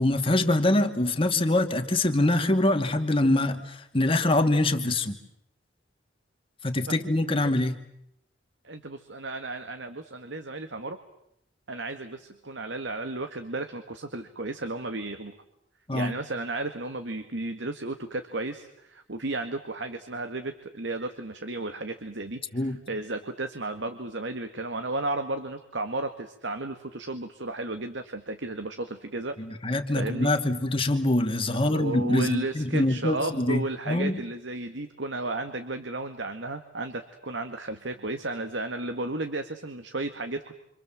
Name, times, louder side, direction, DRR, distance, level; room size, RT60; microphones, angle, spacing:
voice 1, 0.0-5.2 6.6-7.8 15.9-16.1 22.5-22.8 29.4-34.2, left 1 dB, 30° left, 5 dB, 2.5 m, -24 dB
voice 2, 8.6-11.0 11.7-15.3 15.9-29.3 30.0-30.3 31.7-40.5, right 2 dB, 75° right, 7 dB, 1.9 m, -33 dB
29.0 x 26.5 x 7.6 m, 0.78 s
head